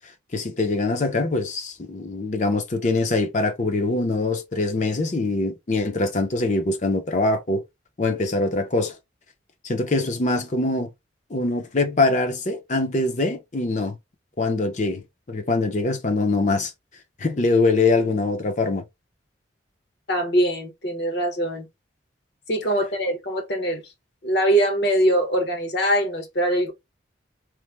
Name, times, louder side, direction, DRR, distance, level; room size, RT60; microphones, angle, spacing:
voice 1, 0.3-7.6 8.0-8.9 9.6-10.9 11.3-13.9 14.4-15.0 15.3-16.7 17.2-18.8, left 2 dB, 40° left, 0.6 m, -23 dB
voice 2, 20.1-21.7 22.5-23.8 24.2-26.7, right 1 dB, 60° left, 0.9 m, -22 dB
3.2 x 2.0 x 3.2 m
head